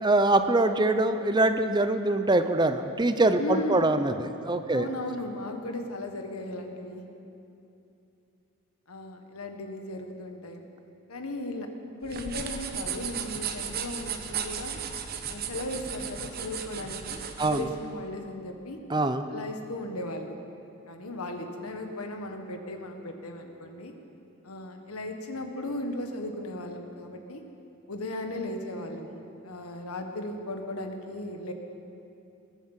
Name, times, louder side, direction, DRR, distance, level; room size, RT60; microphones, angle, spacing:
voice 1, 0.0-4.9 17.4-17.7 18.9-19.3, right 2 dB, 20° right, 9 dB, 0.6 m, -24 dB
voice 2, 3.4-3.9 4.7-7.0 8.9-10.6 11.1-11.7 12.0-14.8 15.3-18.8 19.3-20.4 20.9-23.9 24.4-27.4 27.9-31.5, left 1 dB, 80° left, 4 dB, 1.6 m, -36 dB
sound 1, 12.0-17.6, right 7 dB, 45° right, 1.0 m, -35 dB
20.5 x 9.6 x 7.3 m, 2.8 s
head